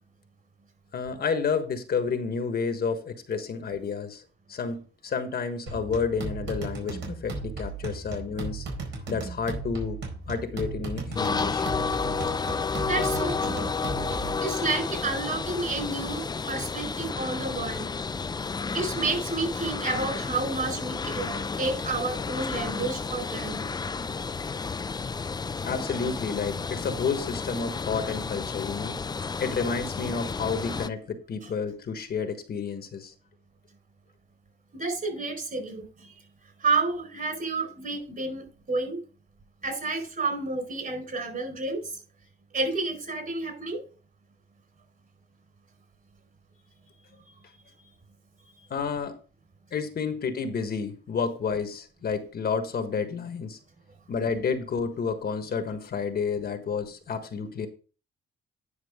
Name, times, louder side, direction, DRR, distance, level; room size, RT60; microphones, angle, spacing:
voice 1, 0.9-4.2 4.5-8.7 9.1-11.7 25.6-29.0 29.4-33.1 48.7-49.2 49.7-53.6 54.1-57.7, left 5 dB, 50° left, 1.4 m, -30 dB
sound 1, 5.7-14.4, right 3 dB, 75° right, 4.3 m, -36 dB
sound 2, 11.2-30.9, left 5 dB, 20° left, 0.4 m, -31 dB
voice 2, 12.9-13.7 14.4-17.8 18.7-23.7 34.7-36.2 36.6-39.0 39.6-42.0 42.5-43.8, right 3 dB, 45° right, 4.6 m, -30 dB
10.0 x 6.0 x 3.6 m
cardioid pair, 90°, 20 cm